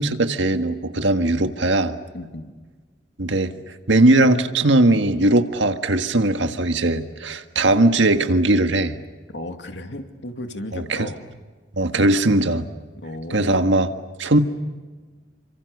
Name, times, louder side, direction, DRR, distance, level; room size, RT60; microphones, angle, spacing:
voice 1, 0.0-1.9 3.2-3.5 3.9-9.0 10.7-11.1 11.8-12.7 13.3-13.9 14.2-14.4, right 2 dB, 80° right, 7 dB, 1.7 m, -19 dB
voice 2, 2.1-2.5 9.3-11.3 13.0-13.7, left 1 dB, 70° left, 5 dB, 2.5 m, -34 dB
29.0 x 25.5 x 6.7 m, 1.4 s
head